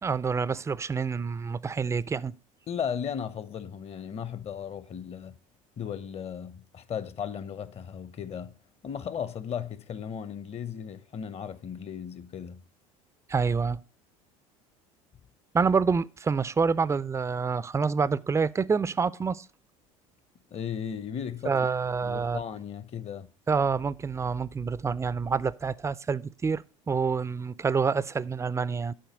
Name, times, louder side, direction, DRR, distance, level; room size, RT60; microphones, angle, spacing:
voice 1, 0.0-2.3 13.3-13.8 15.5-19.5 21.5-22.4 23.5-28.9, right 5 dB, 15° right, 0.4 m, -27 dB
voice 2, 2.7-5.3 5.8-8.5 8.8-12.6 20.5-21.6 22.0-23.3, left 8 dB, 35° left, 0.8 m, -36 dB
11.5 x 4.2 x 5.1 m
hypercardioid pair, 75°, 17 cm